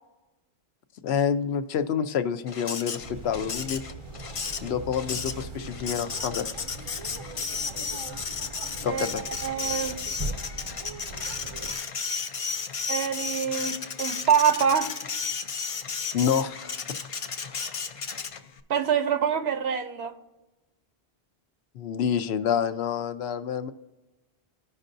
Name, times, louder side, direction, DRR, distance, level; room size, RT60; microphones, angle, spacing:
voice 1, 1.0-3.8 4.6-6.5 8.8-9.2 16.1-16.8 17.5-17.8 21.7-23.7, left 8 dB, 80° left, 0.9 m, -28 dB
Printer, 2.5-18.6, left 5 dB, 45° left, 0.5 m, -34 dB
sound 1, 3.0-11.8, right 3 dB, 40° right, 0.4 m, -40 dB
voice 2, 8.9-10.0 12.9-14.9 18.7-20.1, right 7 dB, 80° right, 0.9 m, -25 dB
15.0 x 5.5 x 2.6 m
omnidirectional pair, 1.1 m